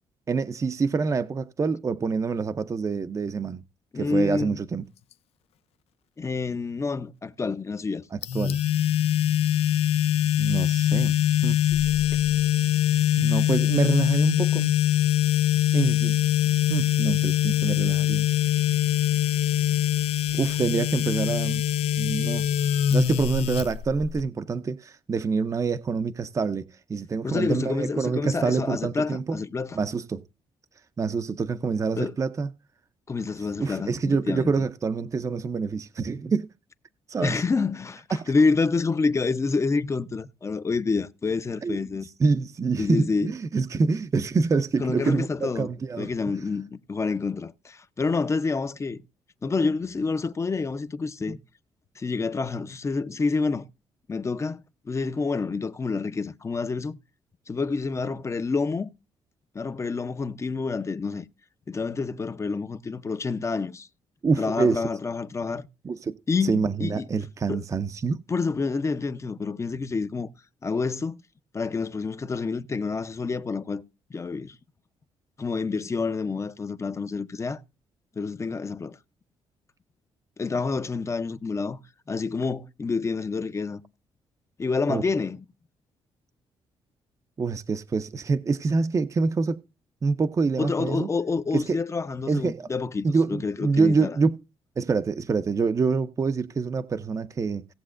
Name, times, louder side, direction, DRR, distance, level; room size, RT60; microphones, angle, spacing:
voice 1, 0.3-3.6 4.0-4.8 8.1-8.6 10.3-11.2 11.4-11.7 13.2-14.7 15.7-16.2 16.7-18.3 20.3-21.6 22.0-22.5 22.9-29.4 29.7-30.2 31.0-32.5 33.6-36.5 37.1-37.4 38.1-38.3 41.6-46.1 51.3-51.4 64.2-64.9 65.8-68.2 84.9-85.0 87.4-89.6 90.0-91.1 91.5-91.8 92.3-92.7 93.0-94.4 94.8-97.7, right 4 dB, 30° right, 0.6 m, -26 dB
voice 2, 3.9-4.6 6.2-8.0 27.2-29.8 31.9-32.1 33.1-34.5 37.2-42.1 42.8-43.3 44.8-45.7 46.0-49.0 49.4-51.4 52.0-53.6 54.1-57.0 57.5-58.9 59.5-61.3 61.7-63.9 64.4-65.7 66.3-67.1 67.5-67.6 68.3-70.3 70.6-71.2 71.5-73.8 74.1-74.6 75.4-77.6 78.2-79.0 80.4-81.8 82.1-83.8 84.6-85.4 90.6-94.2, left 4 dB, 30° left, 0.7 m, -28 dB
sound 1, 8.2-24.2, left 12 dB, 80° left, 0.6 m, -23 dB
17.5 x 7.4 x 2.5 m
cardioid pair, 100°, 10 cm